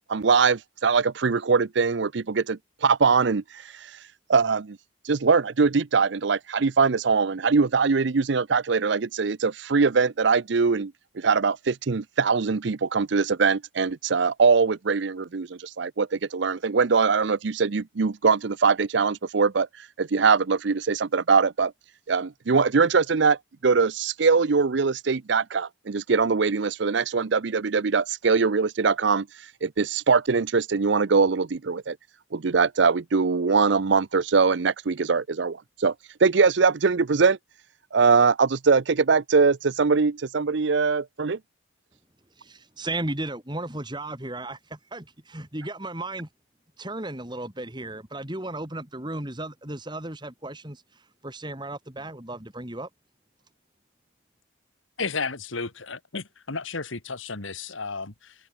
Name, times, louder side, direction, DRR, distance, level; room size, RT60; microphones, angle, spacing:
voice 1, 0.0-3.9 4.3-4.8 5.0-21.7 22.1-23.4 23.6-29.3 29.6-32.0 32.3-35.9 36.2-37.4 37.9-41.4, right 5 dB, 60° right, 0.6 m, -22 dB
voice 2, 42.4-46.3 46.8-50.8 51.2-52.9, right 2 dB, 20° right, 2.7 m, -35 dB
voice 3, 55.0-58.3, left 4 dB, 75° left, 2.0 m, -33 dB
head